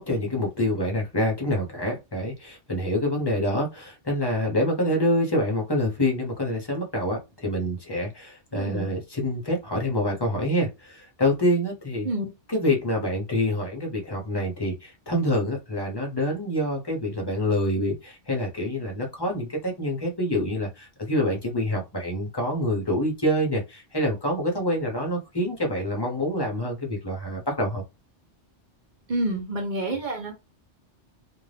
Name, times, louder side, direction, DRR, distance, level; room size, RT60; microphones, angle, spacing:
voice 1, 0.0-12.1 12.5-27.8, left 1 dB, 25° left, 0 dB, 0.6 m, -26 dB
voice 2, 8.5-8.9 12.0-12.3 29.1-30.4, right 1 dB, 45° right, 1 dB, 0.8 m, -28 dB
2.5 x 2.3 x 3.2 m, 0.25 s
omnidirectional pair, 1.2 m